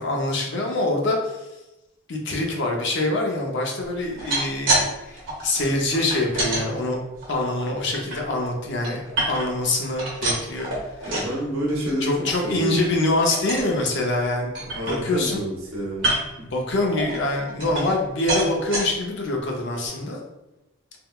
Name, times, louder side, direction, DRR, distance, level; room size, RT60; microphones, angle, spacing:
voice 1, 0.0-1.6 2.1-7.0 7.3-9.0 9.3-11.3 12.0-15.4 16.4-20.2, left 2 dB, 60° left, 0 dB, 0.6 m, -25 dB
sound 1, 4.0-4.9 5.1-6.6 7.2-8.2 8.6-9.6 9.9-11.3 11.7-11.9 12.3-12.4 12.7-13.0 13.3-13.7 14.2-14.3 14.5-15.4 15.9-16.4 17.0-18.0 18.3-18.8 19.4-19.5 19.9-20.0, right 1 dB, 60° right, 1.2 m, -27 dB
voice 2, 11.1-12.9 14.7-16.2, right 1 dB, 85° right, -3 dB, 0.9 m, -28 dB
3.5 x 2.1 x 2.3 m, 0.98 s
head